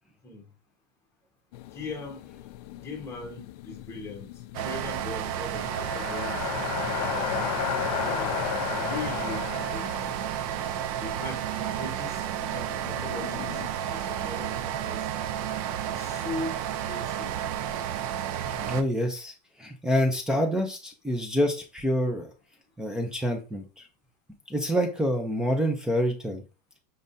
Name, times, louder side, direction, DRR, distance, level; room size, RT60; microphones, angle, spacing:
sound 1, 1.5-11.0 11.4-11.5 12.1-13.7, left 15 dB, 65° left, 0.4 m, -35 dB
voice 1, 1.7-2.2 2.8-4.3 4.6-6.5 7.1-7.7 7.9-8.4 8.8-9.9 11.0-13.6 13.9-15.1 15.9-17.4 18.4-18.7, left 3 dB, 15° left, 1.3 m, -40 dB
sound 2, 4.5-18.8, right 10 dB, 55° right, 0.5 m, -32 dB
voice 2, 18.6-19.3 19.6-22.3 22.8-23.8 24.5-26.4, equal, 5° right, 0.5 m, -27 dB
5.3 x 3.5 x 2.7 m
supercardioid pair, 155°, 21 cm